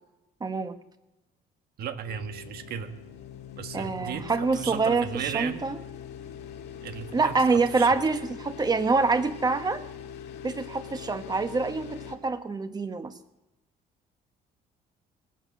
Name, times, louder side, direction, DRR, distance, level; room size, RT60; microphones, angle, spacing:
voice 1, 0.4-0.8 3.7-5.8 7.1-9.8 10.4-13.1, right 4 dB, 25° right, 10 dB, 1.3 m, -26 dB
voice 2, 1.8-2.9 3.6-5.6 6.8-8.0, right 8 dB, 65° right, 9 dB, 1.4 m, -35 dB
sound 1, 2.0-12.1, left 8 dB, 80° left, 1.8 m, -42 dB
20.0 x 8.4 x 7.6 m, 0.99 s
cardioid pair, 110°, 17 cm